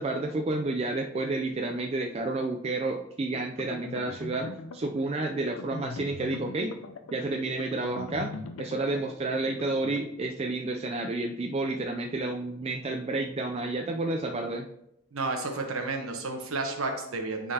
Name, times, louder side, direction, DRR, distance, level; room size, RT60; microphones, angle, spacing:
voice 1, 0.0-6.8 7.1-8.3 8.6-14.7, right 2 dB, 25° right, 2 dB, 0.3 m, -30 dB
sound 1, 3.3-10.0, left 3 dB, 70° left, 0.4 m, -42 dB
voice 2, 15.1-17.5, right 3 dB, 70° right, 4 dB, 1.0 m, -31 dB
9.6 x 3.8 x 2.8 m, 0.79 s
head